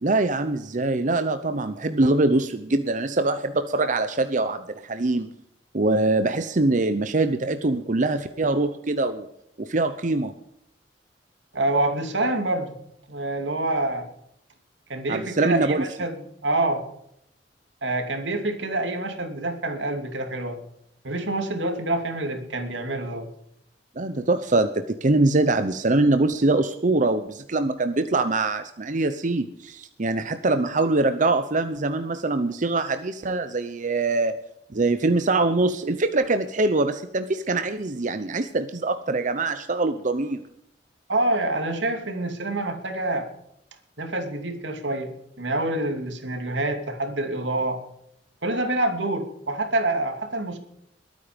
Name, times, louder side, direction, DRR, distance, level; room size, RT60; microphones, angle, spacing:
voice 1, 0.0-5.3 5.7-9.3 9.6-10.3 15.1-15.9 24.0-34.4 34.7-40.4, right 2 dB, 45° right, 9 dB, 0.8 m, -23 dB
voice 2, 11.5-12.7 13.1-14.1 14.9-16.8 17.8-20.6 21.0-23.3 41.1-43.3 44.0-45.1 45.4-47.8 48.4-50.6, right 2 dB, 85° right, 6 dB, 2.7 m, -26 dB
21.5 x 9.3 x 5.2 m, 0.75 s
head